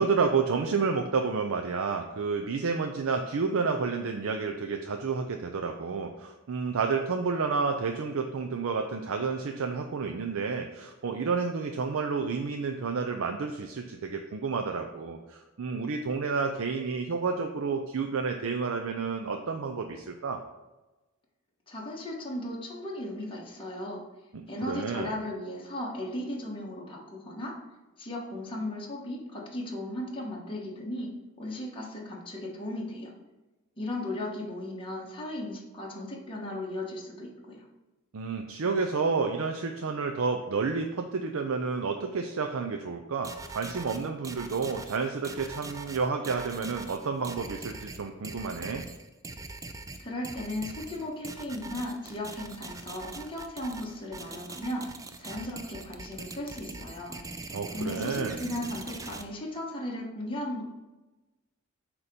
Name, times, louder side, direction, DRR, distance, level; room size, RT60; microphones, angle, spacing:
voice 1, 0.0-20.4 24.7-25.1 38.1-48.8 57.5-58.4, right 5 dB, 65° right, 4 dB, 0.5 m, -30 dB
voice 2, 21.7-24.0 24.5-27.5 28.0-31.1 31.4-33.1 33.8-37.6 50.0-54.8 55.2-57.2 57.7-60.6, left 1 dB, 25° left, -3 dB, 1.2 m, -36 dB
sound 1, 43.2-59.2, right 3 dB, 15° right, 0.4 m, -42 dB
8.1 x 3.0 x 5.1 m, 1.1 s
head